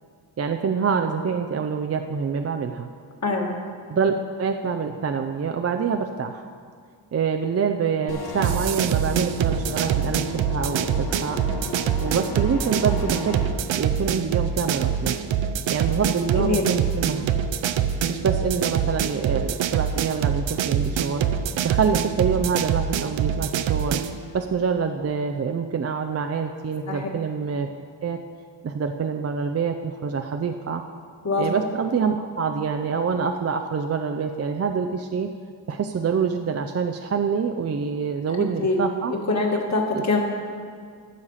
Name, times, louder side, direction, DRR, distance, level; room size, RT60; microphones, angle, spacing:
voice 1, 0.4-2.9 3.9-6.4 7.1-11.4 12.0-13.4 13.7-15.1 15.7-17.3 18.1-21.2 21.6-24.0 24.3-27.7 28.0-28.2 28.6-30.8 31.4-35.3 35.7-39.1 39.9-40.0, right 6 dB, 35° right, 5 dB, 0.5 m, -26 dB
voice 2, 3.2-3.5 16.4-16.7 26.9-27.1 31.2-31.5 38.4-38.8 39.3-40.2, left 3 dB, 35° left, 0 dB, 1.9 m, -24 dB
sound 1, 8.1-13.5, left 4 dB, 50° left, 1.5 m, -35 dB
sound 2, 8.4-24.2, right 8 dB, 70° right, 0.7 m, -25 dB
14.5 x 6.6 x 5.6 m, 2.1 s
cardioid pair, 115°, 46 cm